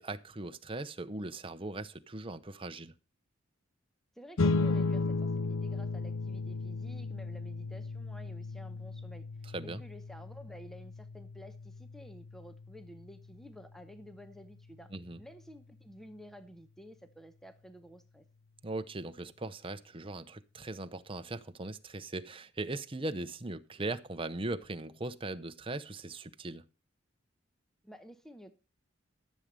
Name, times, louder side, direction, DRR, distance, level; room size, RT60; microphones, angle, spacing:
voice 1, 0.0-2.9 9.5-9.8 14.9-15.2 18.6-26.6, right 2 dB, 25° right, 0.8 m, -39 dB
voice 2, 4.2-9.3 9.6-14.9 15.2-18.2 27.8-28.5, equal, ahead, 0.9 m, -52 dB
sound 1, 4.4-15.1, left 3 dB, 75° left, 0.6 m, -35 dB
13.5 x 7.5 x 5.3 m
head